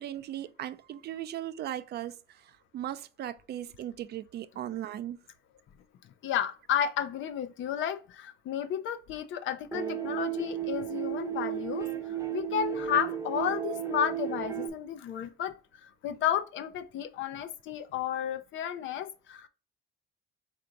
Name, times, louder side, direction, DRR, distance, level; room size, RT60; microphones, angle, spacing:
voice 1, 0.0-5.2, right 11 dB, 55° right, 0.4 m, -38 dB
voice 2, 6.2-11.9 12.3-19.5, left 9 dB, 75° left, 0.6 m, -32 dB
sound 1, 9.7-14.7, right 10 dB, 15° right, 0.6 m, -34 dB
3.8 x 2.6 x 4.4 m
cardioid pair, 130°, 20 cm